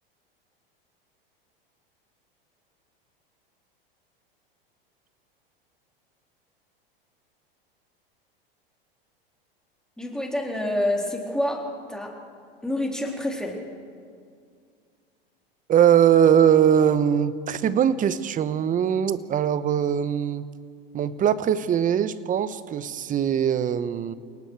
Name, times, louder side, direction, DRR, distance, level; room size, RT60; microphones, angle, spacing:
voice 1, 10.0-11.6 11.9-12.2 12.6-13.6, left 1 dB, ahead, 0 dB, 3.8 m, -27 dB
voice 2, 15.7-20.5 20.9-24.1, right 9 dB, 30° right, 15 dB, 1.0 m, -21 dB
29.5 x 18.5 x 4.8 m, 2.2 s
hypercardioid pair, 95°, 29 cm